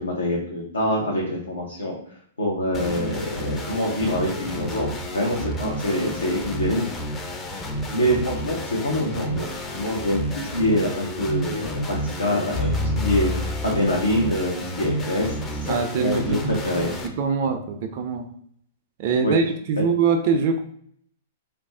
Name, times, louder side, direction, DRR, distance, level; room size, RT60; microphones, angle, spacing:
voice 1, 0.0-1.9 2.4-4.9 5.1-6.8 7.9-9.5 9.7-12.7 12.9-16.9 19.2-19.3, left 1 dB, 85° left, -3 dB, 0.6 m, -25 dB
sound 1, 2.7-17.1, equal, 20° left, 0.4 m, -31 dB
sound 2, 12.5-14.7 15.1-15.2, left 2 dB, 45° left, 0.9 m, -28 dB
voice 2, 15.7-16.4 17.2-18.2 19.0-20.6, right 5 dB, 50° right, 5 dB, 0.4 m, -23 dB
2.4 x 2.0 x 3.5 m, 0.64 s
hypercardioid pair, 110°, 0 cm